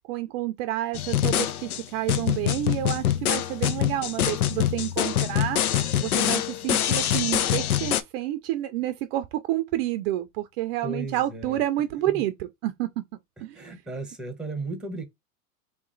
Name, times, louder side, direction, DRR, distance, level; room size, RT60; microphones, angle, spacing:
voice 1, 0.1-5.6 6.0-12.9 13.4-13.6, right 14 dB, 45° right, 0.5 m, -29 dB
sound 1, 0.9-8.0, left 10 dB, 80° left, 0.7 m, -25 dB
voice 2, 10.8-11.6 12.1-12.2 13.5-15.1, right 2 dB, ahead, 0.9 m, -35 dB
3.5 x 3.0 x 3.8 m
hypercardioid pair, 125°, 43 cm